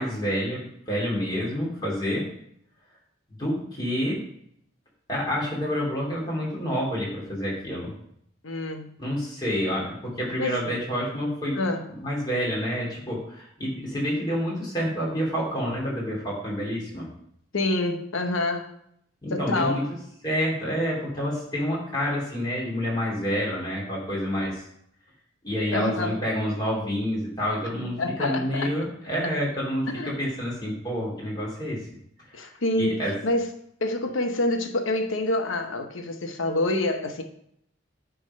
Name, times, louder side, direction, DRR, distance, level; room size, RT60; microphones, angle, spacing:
voice 1, 0.0-2.3 3.4-4.2 5.1-7.9 9.0-11.6 12.0-17.1 19.2-19.8 20.2-24.6 25.4-31.8 32.4-32.5 32.8-33.1, equal, 20° left, -4 dB, 2.7 m, -28 dB
voice 2, 8.4-9.0 10.4-10.5 11.5-11.8 17.5-18.7 19.3-19.9 25.7-26.2 28.0-28.7 29.9-30.2 32.3-33.5 33.8-37.2, left 2 dB, 85° left, 5 dB, 0.9 m, -27 dB
9.5 x 3.6 x 5.4 m, 0.71 s
head